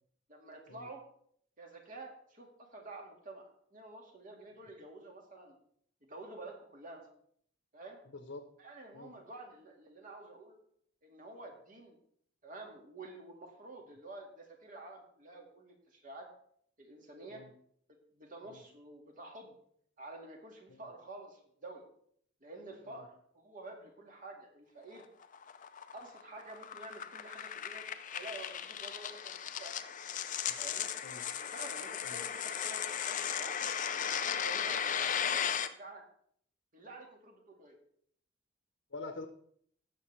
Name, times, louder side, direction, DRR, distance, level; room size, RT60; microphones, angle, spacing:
voice 1, 0.3-1.0 1.6-5.6 6.0-7.1 7.7-8.0 8.6-10.6 11.0-12.0 12.4-16.3 16.8-17.4 18.1-19.6 20.0-21.9 22.4-23.1 23.3-25.0 25.9-29.7 30.6-30.9 31.4-33.7 34.1-36.0 36.7-37.8, right 2 dB, 45° right, 1 dB, 2.0 m, -49 dB
voice 2, 8.1-8.5 8.9-9.1 17.3-17.5 18.4-18.6 20.7-20.9 22.9-23.0 30.5-30.6 31.0-31.2 32.0-32.2 38.9-39.3, left 3 dB, 75° left, 6 dB, 1.0 m, -46 dB
sound 1, 25.0-35.7, left 8 dB, 45° left, 0.5 m, -36 dB
16.0 x 6.5 x 3.3 m, 0.64 s
head